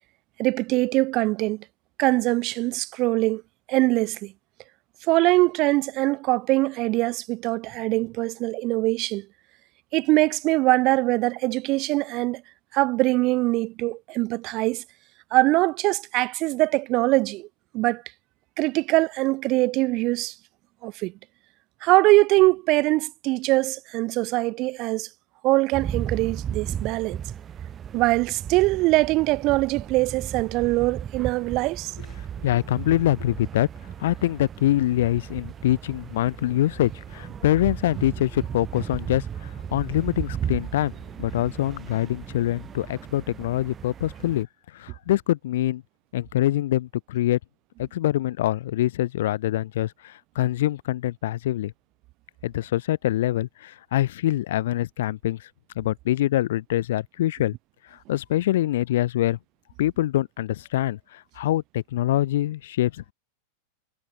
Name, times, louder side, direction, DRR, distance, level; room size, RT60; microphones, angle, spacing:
voice 1, 0.4-1.6 2.0-3.4 3.7-4.3 5.1-9.3 9.9-12.4 12.7-14.8 15.3-17.5 17.7-18.0 18.6-20.3 20.8-21.1 21.8-25.1 25.4-27.2 27.9-31.9, right 21 dB, 40° right, 1.1 m, -22 dB
sound 1, 25.7-44.4, right 9 dB, 25° right, 0.4 m, -35 dB
voice 2, 32.4-33.7 34.0-40.9 41.2-44.5 44.7-45.8 46.1-47.4 47.8-51.7 52.4-55.4 55.8-57.5 57.9-59.4 59.8-63.1, left 14 dB, 55° left, 0.7 m, -24 dB
sound 2, 37.1-43.4, left 8 dB, 25° left, 4.4 m, -54 dB
figure-of-eight pair, 90°, 0 cm